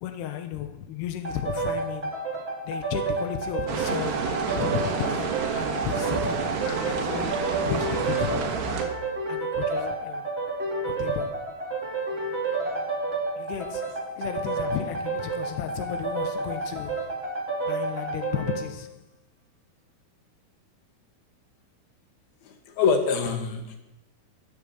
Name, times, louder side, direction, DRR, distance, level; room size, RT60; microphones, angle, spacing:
voice 1, 0.0-2.1 2.7-8.6 9.3-10.3 10.9-11.4 13.4-17.1 17.7-19.0, left 10 dB, 90° left, 3.1 m, -34 dB
sound 1, 1.2-18.7, right 3 dB, 25° right, 1.7 m, -30 dB
sound 2, 3.7-8.8, right 7 dB, 80° right, 3.5 m, -29 dB
voice 2, 22.4-23.8, left 5 dB, 70° left, 3.5 m, -25 dB
20.0 x 7.3 x 7.6 m
omnidirectional pair, 4.7 m